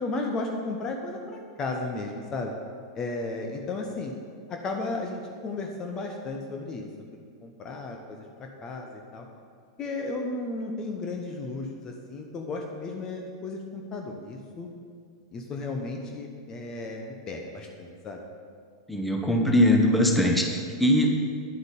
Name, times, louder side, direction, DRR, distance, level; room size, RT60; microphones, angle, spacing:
voice 1, 0.0-2.5 2.9-4.1 4.5-9.3 9.8-14.7 15.3-18.2, left 3 dB, 30° left, 2 dB, 1.0 m, -34 dB
voice 2, 18.9-21.1, left 1 dB, 5° left, 1 dB, 1.2 m, -21 dB
10.0 x 7.9 x 5.4 m, 2.1 s
figure-of-eight pair, 90°, 2 cm